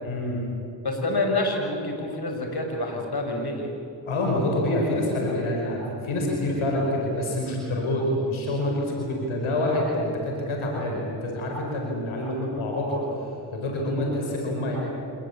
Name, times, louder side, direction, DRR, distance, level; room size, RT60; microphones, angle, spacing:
voice 1, 0.0-0.4 4.1-13.0 13.5-14.8, left 1 dB, 85° left, -1 dB, 5.4 m, -27 dB
voice 2, 0.8-3.7, left 2 dB, 50° left, 2 dB, 6.5 m, -27 dB
28.0 x 20.5 x 8.7 m, 2.9 s
supercardioid pair, 40°, 48 cm